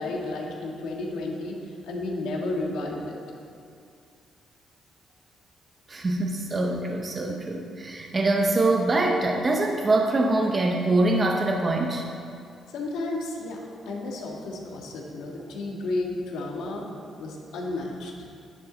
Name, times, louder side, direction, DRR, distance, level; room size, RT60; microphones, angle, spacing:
voice 1, 0.0-3.2 12.7-16.9 17.2-18.1, left 2 dB, 90° left, -1 dB, 1.7 m, -32 dB
voice 2, 5.9-12.0, right 2 dB, 25° right, 1 dB, 0.8 m, -24 dB
11.0 x 9.5 x 4.0 m, 2.4 s
cardioid pair, 135°, 0 cm